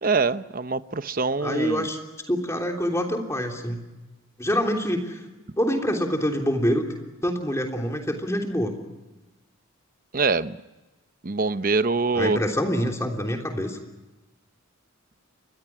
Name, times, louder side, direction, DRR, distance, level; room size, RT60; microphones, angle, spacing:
voice 1, 0.0-1.9 10.1-10.6 11.2-12.4, right 4 dB, 40° right, 12 dB, 0.8 m, -24 dB
voice 2, 1.4-2.0 2.3-3.8 4.4-5.2 5.6-6.9 7.2-8.7 12.1-13.8, equal, 15° left, 2 dB, 3.3 m, -25 dB
29.5 x 24.0 x 6.0 m, 1.1 s
head